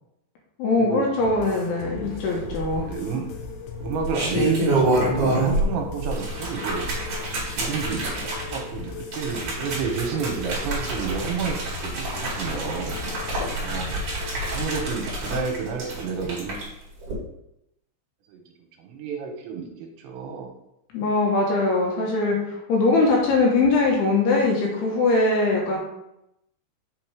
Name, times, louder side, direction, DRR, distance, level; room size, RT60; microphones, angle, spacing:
voice 1, 0.6-2.9 20.9-22.4 22.7-25.8, left 3 dB, 70° left, -1 dB, 2.9 m, -21 dB
sound 1, 1.2-14.8, left 4 dB, 85° left, 3.3 m, -38 dB
sound 2, 2.4-3.1 3.9-5.7 6.0-16.6 17.0-17.1, right 1 dB, 45° right, 2.1 m, -27 dB
voice 2, 2.8-3.3 3.8-6.8 7.5-13.0 13.6-14.0 14.5-16.5 18.3-18.4 18.8-20.5, right 6 dB, 80° right, 2 dB, 3.0 m, -30 dB
7.5 x 4.0 x 4.7 m, 0.84 s
omnidirectional pair, 5.4 m